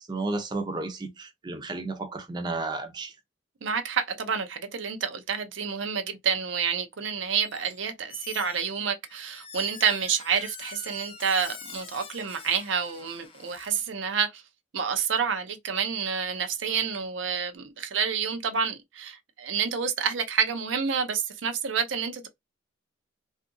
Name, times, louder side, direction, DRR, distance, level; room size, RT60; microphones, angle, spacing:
voice 1, 0.1-3.1, right 3 dB, 25° right, 0.5 m, -32 dB
voice 2, 3.6-14.4 14.7-22.3, right 6 dB, 85° right, 0.5 m, -28 dB
Squeak, 7.4-7.8 8.1-13.7, left 6 dB, 30° left, 0.6 m, -45 dB
2.6 x 2.5 x 2.5 m
head